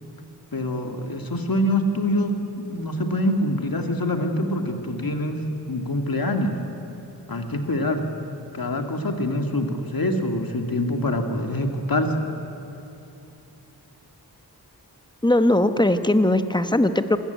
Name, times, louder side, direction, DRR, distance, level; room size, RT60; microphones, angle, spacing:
voice 1, 0.5-6.5 7.3-8.0 8.5-12.3, left 1 dB, 60° left, 4 dB, 2.3 m, -25 dB
voice 2, 15.2-17.2, left 1 dB, 10° left, 9 dB, 1.0 m, -19 dB
26.5 x 14.5 x 9.3 m, 2.8 s
wide cardioid pair, 75°, 39 cm